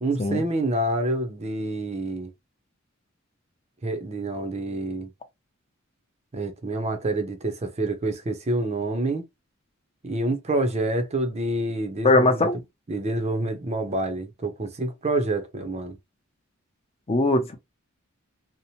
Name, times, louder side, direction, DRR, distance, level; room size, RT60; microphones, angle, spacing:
voice 1, 0.0-2.3 3.8-5.1 6.3-9.2 10.0-12.5 12.9-16.0, right 2 dB, 30° right, 0.5 m, -27 dB
voice 2, 12.0-12.6 17.1-17.5, left 2 dB, 30° left, 0.5 m, -20 dB
2.7 x 2.0 x 2.8 m
head